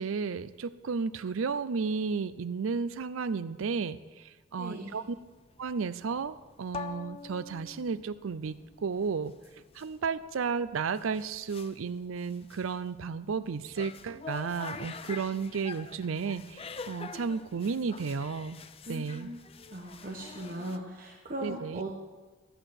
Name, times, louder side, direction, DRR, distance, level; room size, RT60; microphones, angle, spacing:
voice 1, 0.0-5.0 5.6-9.3 9.7-18.6 18.9-19.3 21.4-21.8, right 5 dB, 80° right, 15 dB, 0.5 m, -33 dB
voice 2, 4.6-5.1 18.9-22.0, right 1 dB, 45° right, 0 dB, 1.1 m, -39 dB
sound 1, 4.9-20.8, left 5 dB, 30° left, 0.5 m, -46 dB
12.5 x 7.9 x 6.5 m, 1.3 s
head